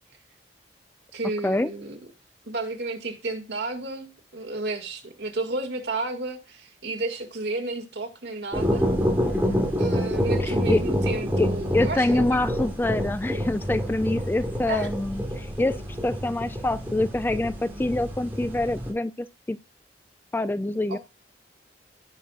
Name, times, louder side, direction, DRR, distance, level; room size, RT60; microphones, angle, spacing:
voice 1, 1.1-2.0 2.4-8.9 9.8-12.4 14.7-14.9 20.9-21.0, right 2 dB, 70° right, 2.0 m, -32 dB
sound 1, 8.5-18.9, equal, 10° right, 2.8 m, -27 dB
voice 2, 9.3-9.7 10.4-10.8 11.4-11.5 11.7-15.8 16.0-19.6 20.3-21.0, left 2 dB, 10° left, 0.3 m, -26 dB
16.0 x 5.7 x 2.4 m
head